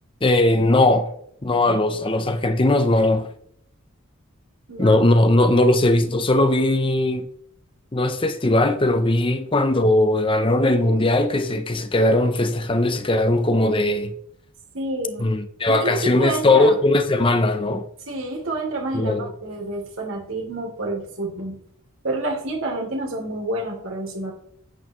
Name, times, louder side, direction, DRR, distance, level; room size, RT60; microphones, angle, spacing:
voice 1, 0.2-1.1 1.4-3.3 4.8-7.3 7.9-14.1 15.2-17.8 18.9-19.3, left 2 dB, 25° left, 0.7 m, -19 dB
voice 2, 4.7-5.0 14.7-15.3 15.7-16.8 18.1-21.6 22.0-24.3, right 2 dB, 70° right, 3.0 m, -28 dB
10.5 x 8.8 x 3.1 m
head